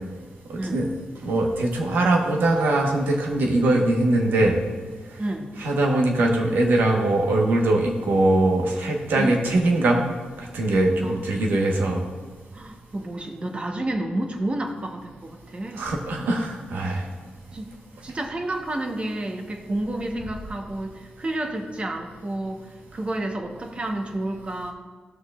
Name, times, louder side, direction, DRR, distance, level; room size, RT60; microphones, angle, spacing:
voice 1, 0.5-0.9 1.2-4.6 5.6-10.0 10.5-12.0 15.8-17.0, right 2 dB, 90° right, 1 dB, 1.2 m, -21 dB
voice 2, 11.0-11.5 12.5-15.9 17.5-17.7 18.0-24.7, right 1 dB, 35° right, 3 dB, 1.1 m, -30 dB
14.0 x 6.3 x 2.4 m, 1.4 s
cardioid pair, 75°, 3 cm